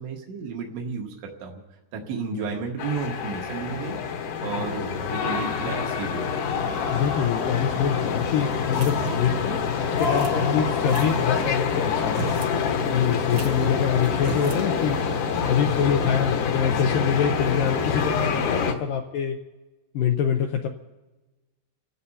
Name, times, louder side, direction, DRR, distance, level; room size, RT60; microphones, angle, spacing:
voice 1, 0.0-1.5 1.9-4.0 4.4-6.3, right 5 dB, 85° right, 1 dB, 3.8 m, -32 dB
sound 1, 2.8-18.7, left 6 dB, 65° left, 2.2 m, -26 dB
voice 2, 4.6-5.1 6.9-12.4 12.9-15.0 15.5-19.4 19.9-20.7, left 8 dB, 85° left, 4 dB, 2.0 m, -25 dB
sound 2, 8.7-9.4 10.0-10.4 10.9-11.3 12.0-12.6 12.8-12.9 13.3-13.8 14.2-14.7, right 3 dB, 60° right, 1.8 m, -36 dB
30.0 x 17.0 x 2.8 m, 1.1 s
omnidirectional pair, 4.8 m